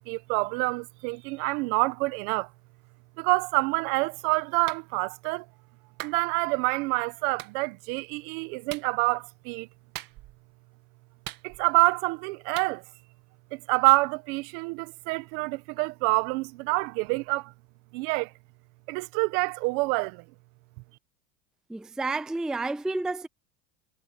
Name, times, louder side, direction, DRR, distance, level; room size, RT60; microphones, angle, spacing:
voice 1, 0.0-2.5 3.2-5.5 6.0-9.7 11.4-12.8 13.5-17.5 17.9-18.3 18.9-20.2, right 25 dB, 65° right, 1.3 m, -27 dB
Clapping, 4.7-4.8 6.0-6.2 7.4-7.5 8.7-8.9 9.9-10.4 11.2-11.8 12.6-12.7, right 16 dB, 50° right, 2.3 m, -40 dB
voice 2, 21.7-23.3, right 3 dB, ahead, 0.5 m, -30 dB
supercardioid pair, 125°, 44 cm